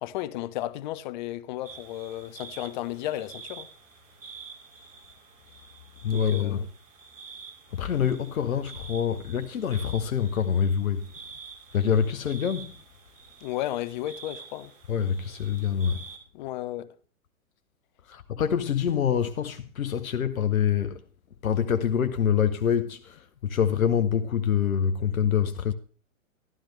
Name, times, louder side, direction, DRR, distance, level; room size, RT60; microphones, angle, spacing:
voice 1, 0.0-3.7 6.1-6.7 13.4-14.7 16.3-16.9, left 14 dB, 35° left, 0.6 m, -33 dB
sound 1, 1.6-16.2, right 5 dB, 70° right, 2.8 m, -47 dB
voice 2, 6.0-6.7 7.7-11.1 11.7-12.7 14.9-16.0 18.1-21.0 21.4-25.7, left 8 dB, 85° left, 0.8 m, -26 dB
12.5 x 11.5 x 3.3 m
hypercardioid pair, 120°, 41 cm